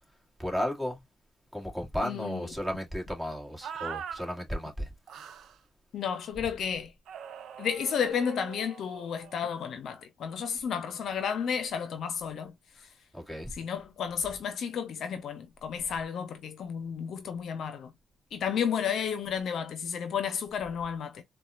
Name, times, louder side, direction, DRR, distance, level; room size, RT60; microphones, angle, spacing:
voice 1, 0.4-1.0 1.5-4.9 13.1-13.5, equal, 5° right, 1.8 m, -34 dB
voice 2, 2.0-2.5 5.9-6.9 7.6-12.5 13.6-17.9 18.3-21.2, left 7 dB, 65° left, 0.7 m, -32 dB
sound 1, 3.6-4.2 5.1-5.6 7.1-9.4, right 8 dB, 70° right, 0.5 m, -42 dB
4.1 x 2.3 x 2.4 m
supercardioid pair, 65°, 0 cm